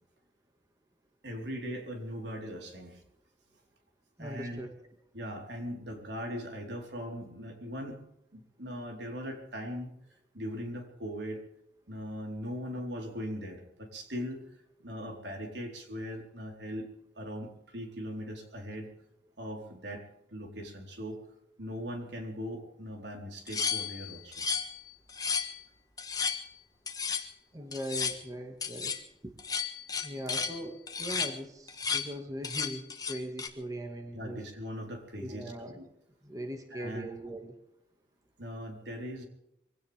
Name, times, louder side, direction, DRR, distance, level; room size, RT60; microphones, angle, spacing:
voice 1, 1.2-3.0 4.2-4.6 5.1-8.0 8.3-9.9 10.3-11.4 11.9-14.4 14.8-16.8 17.1-18.9 19.4-21.2 21.6-24.5 34.1-35.8 36.7-37.1 38.4-39.3, equal, 85° right, 2 dB, 4.3 m, -40 dB
voice 2, 4.2-4.7 27.5-28.9 29.2-29.3 30.0-34.4 35.2-35.8 36.2-37.6, right 1 dB, 20° right, 4 dB, 2.0 m, -40 dB
sound 1, 23.5-24.8 25.1-25.6 26.0-26.4 26.9-27.3 27.7-28.2 28.6-29.0 29.4-30.6 30.9-31.3 31.7-32.1 32.4-33.5, left 6 dB, 20° left, 1.5 m, -33 dB
24.0 x 17.0 x 3.6 m, 0.80 s
head